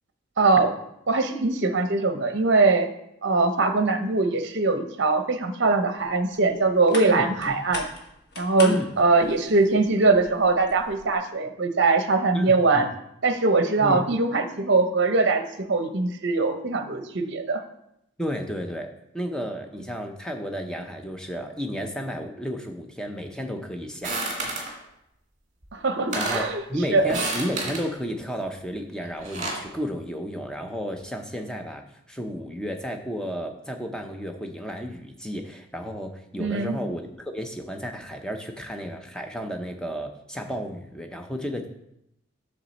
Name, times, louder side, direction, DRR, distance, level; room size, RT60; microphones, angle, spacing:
voice 1, 0.4-0.7 1.1-2.9 3.2-7.8 8.4-12.9 13.2-15.4 15.7-17.6 25.7-26.6 26.9-27.1 36.4-36.8, right 3 dB, 55° right, 8 dB, 0.7 m, -22 dB
sound 1, 6.0-11.2, left 2 dB, 55° left, 1.3 m, -40 dB
voice 2, 7.0-7.5 8.6-8.9 12.3-12.9 13.8-14.0 18.2-24.2 26.1-41.7, equal, 5° left, 4 dB, 0.6 m, -32 dB
sound 2, 24.0-24.7 25.6-25.7 26.0-26.5 27.0-27.9 29.0-29.7, right 2 dB, 35° right, 2.1 m, -30 dB
7.3 x 6.4 x 4.1 m, 0.82 s
head